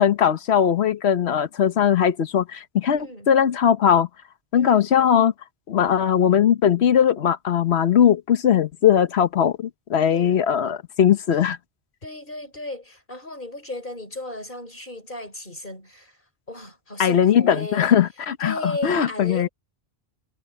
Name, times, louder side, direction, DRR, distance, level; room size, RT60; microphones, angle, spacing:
voice 1, 0.0-4.1 4.5-5.3 5.7-11.6 17.0-19.5, left 9 dB, 85° left, 1.2 m, -19 dB
voice 2, 3.0-3.3 4.5-4.8 10.0-10.5 12.0-16.2 16.5-17.9 18.4-19.5, left 1 dB, 50° left, 6.2 m, -35 dB
omnidirectional pair, 1.1 m